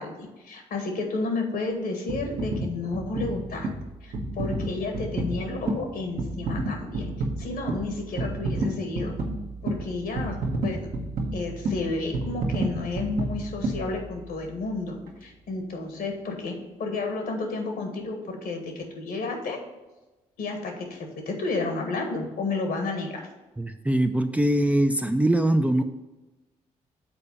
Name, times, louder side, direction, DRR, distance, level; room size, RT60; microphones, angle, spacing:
voice 1, 0.0-3.7 4.0-7.1 7.4-9.1 9.6-10.9 11.3-16.5 16.8-19.6 20.4-23.2, left 3 dB, 65° left, 3 dB, 1.5 m, -31 dB
sound 1, 2.1-14.5 15.1-15.2, right 2 dB, 60° right, 1.2 m, -31 dB
voice 2, 23.6-25.8, right 1 dB, 10° right, 7 dB, 0.5 m, -22 dB
6.9 x 4.3 x 5.6 m, 1.1 s
hypercardioid pair, 40°, 17 cm